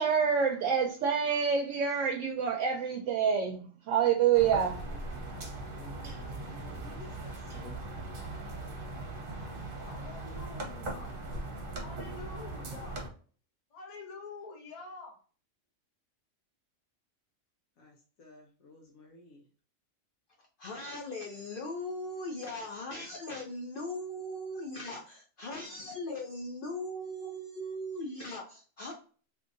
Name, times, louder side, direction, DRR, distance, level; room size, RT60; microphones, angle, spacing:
voice 1, 0.0-4.8, right 7 dB, 70° right, 3 dB, 0.9 m, -27 dB
sound 1, 4.3-13.1, right 2 dB, 45° right, 0.9 m, -40 dB
voice 2, 4.9-8.0 17.8-19.5, left 2 dB, 85° left, 0 dB, 1.1 m, -54 dB
voice 3, 9.6-11.1 11.7-13.0 13.7-15.2, left 3 dB, 35° left, 0 dB, 0.8 m, -47 dB
voice 4, 20.6-28.9, left 1 dB, 60° left, 2 dB, 0.6 m, -39 dB
3.6 x 2.8 x 2.5 m, 0.41 s
omnidirectional pair, 1.4 m